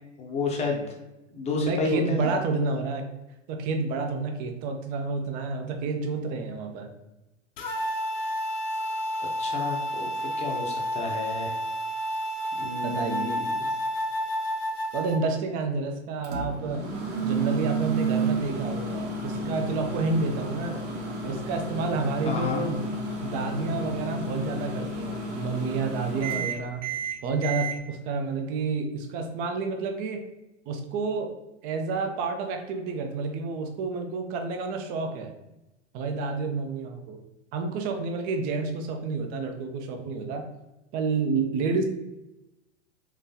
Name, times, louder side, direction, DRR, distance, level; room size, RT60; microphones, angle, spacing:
voice 1, 0.2-0.8 1.3-2.3 9.4-11.5 12.6-13.5 22.2-22.7, left 3 dB, 15° left, 0 dB, 0.7 m, -30 dB
voice 2, 1.6-3.0 3.5-6.9 12.8-13.7 14.9-16.8 17.2-20.8 21.2-22.9 23.2-26.8 27.2-30.2 30.7-31.3 31.6-35.3 35.9-37.2 37.5-40.5 40.9-41.8, right 4 dB, 25° right, 5 dB, 0.4 m, -29 dB
sound 1, 7.6-15.2, equal, 55° left, 0.8 m, -30 dB
Microwave oven, 16.2-27.8, right 3 dB, 65° right, 0.9 m, -31 dB
3.9 x 3.0 x 2.7 m, 0.97 s
figure-of-eight pair, 100°, 37 cm